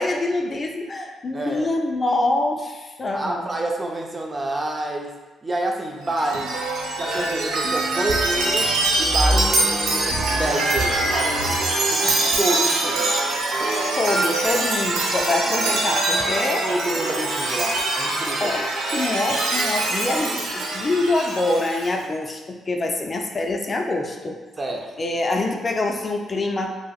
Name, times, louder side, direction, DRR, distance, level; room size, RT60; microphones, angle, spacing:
voice 1, 0.0-3.5 14.0-16.6 18.4-24.4 25.0-26.8, left 2 dB, 35° left, 3 dB, 0.4 m, -25 dB
voice 2, 1.3-1.7 3.1-6.5 7.0-8.7 9.0-11.6 11.9-13.3 16.6-18.5 24.6-24.9, right 2 dB, 35° right, 1 dB, 0.5 m, -28 dB
Chime, 6.0-21.9, right 2 dB, 80° right, 0.6 m, -23 dB
sound 1, 8.5-18.3, equal, 20° left, 1.3 m, -40 dB
5.0 x 2.0 x 2.3 m, 1.2 s
supercardioid pair, 60°, 0 cm